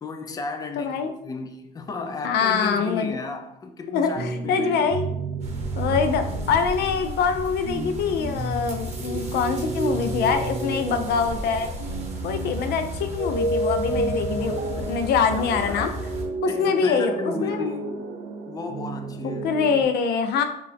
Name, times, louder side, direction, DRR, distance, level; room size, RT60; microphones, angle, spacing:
voice 1, 0.0-4.8 5.9-6.0 14.3-14.6 15.4-15.9 16.5-17.9 18.5-19.5, left 3 dB, 20° left, 5 dB, 0.5 m, -34 dB
voice 2, 0.8-1.1 2.2-3.2 3.9-5.1 5.8-11.7 12.2-15.9 16.4-17.7 19.4-20.4, left 6 dB, 75° left, 8 dB, 0.5 m, -24 dB
sound 1, 4.2-19.8, right 2 dB, 60° right, 0.6 m, -31 dB
sound 2, 5.4-16.2, equal, 40° right, 1.0 m, -34 dB
4.8 x 2.5 x 3.3 m, 0.78 s
cardioid pair, 110°, 17 cm